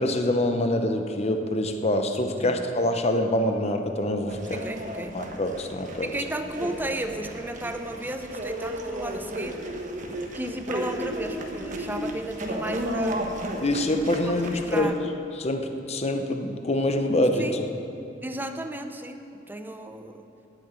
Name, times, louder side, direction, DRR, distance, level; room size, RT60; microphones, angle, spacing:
voice 1, 0.0-4.6 5.1-6.1 13.6-14.9 15.4-17.7, left 1 dB, 35° left, 6 dB, 0.8 m, -25 dB
sound 1, 4.3-14.8, equal, 45° right, 1.3 m, -34 dB
voice 2, 4.5-5.2 6.0-9.7 10.1-13.3 14.2-15.0 17.4-17.6 18.2-20.2, right 1 dB, 10° right, 6 dB, 0.7 m, -34 dB
9.7 x 8.8 x 8.8 m, 2.7 s
head